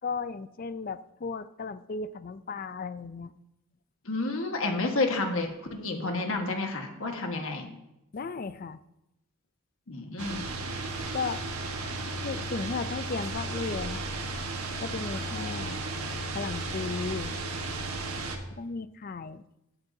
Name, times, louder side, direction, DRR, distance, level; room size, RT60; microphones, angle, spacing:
voice 1, 0.0-3.3 8.1-8.8 11.1-11.4 12.2-14.0 14.8-15.8 16.3-17.3 18.5-19.4, left 4 dB, 40° left, 14 dB, 0.4 m, -35 dB
voice 2, 4.0-7.7 9.9-10.4, left 3 dB, 60° left, 3 dB, 1.5 m, -30 dB
sound 1, 10.2-18.4, right 2 dB, 75° right, 1.4 m, -34 dB
15.0 x 9.1 x 2.7 m, 0.89 s
head